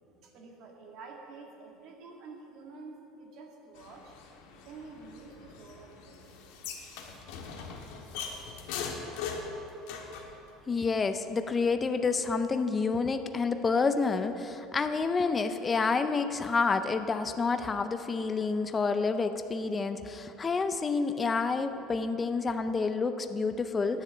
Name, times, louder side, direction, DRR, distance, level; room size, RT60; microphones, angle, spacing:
voice 1, 0.0-4.2 4.6-6.5, right 3 dB, 50° right, 0 dB, 1.9 m, -49 dB
sound 1, 3.8-10.3, left 5 dB, 80° left, 1.6 m, -41 dB
voice 2, 10.7-24.0, left 4 dB, 15° left, 9 dB, 0.5 m, -29 dB
10.5 x 6.9 x 8.6 m, 3.0 s
cardioid pair, 160°, 0 cm